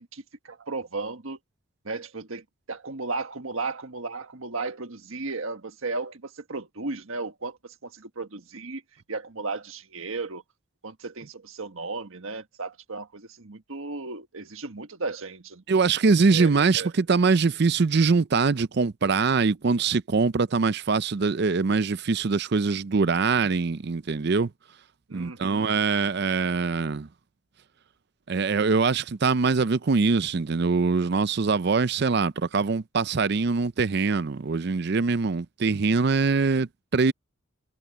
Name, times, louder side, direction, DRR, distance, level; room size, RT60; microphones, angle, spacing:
voice 1, 0.0-1.4 1.8-8.8 9.1-10.4 10.8-15.6 16.3-16.5 16.8-16.9 25.1-25.7, right 3 dB, 70° right, 1.5 m, -35 dB
voice 2, 15.7-24.5 25.1-27.1 28.3-37.1, right 4 dB, 50° right, 0.5 m, -23 dB
head